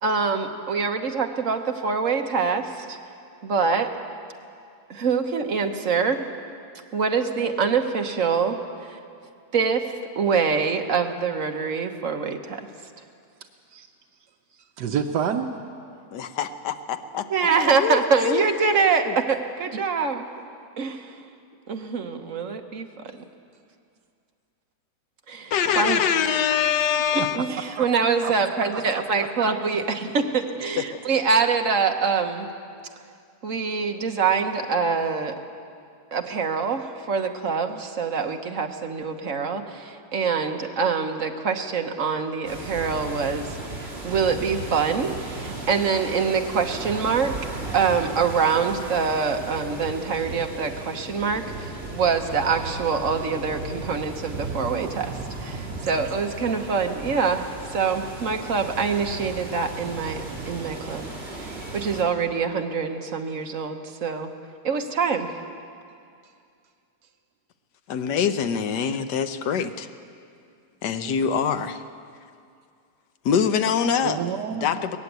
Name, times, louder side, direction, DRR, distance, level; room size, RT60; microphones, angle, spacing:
voice 1, 0.0-3.0 3.4-3.9 4.9-6.3 6.9-9.0 9.5-12.6 17.3-20.3 20.8-21.2 21.7-22.9 25.3-26.0 27.1-32.5 33.4-35.3 36.1-43.5 43.8-47.3 47.7-55.1 55.4-61.1 61.4-61.5 61.7-64.3 64.6-65.3, right 5 dB, 55° right, 5 dB, 1.5 m, -25 dB
voice 2, 14.8-15.5 27.2-27.5 27.8-27.9 28.2-28.3 28.7-28.8 54.7-54.9 74.0-74.7, right 8 dB, 80° right, 5 dB, 1.4 m, -28 dB
voice 3, 16.1-17.3 17.6-18.8 19.1-19.2 25.5-27.5 30.8-31.0 67.9-69.9 70.8-71.8 73.2-74.2 74.5-75.0, left 7 dB, 80° left, 10 dB, 1.5 m, -24 dB
sound 1, 42.5-62.0, right 2 dB, 35° right, 3.1 m, -36 dB
19.5 x 15.0 x 9.4 m, 2.4 s
omnidirectional pair, 1.8 m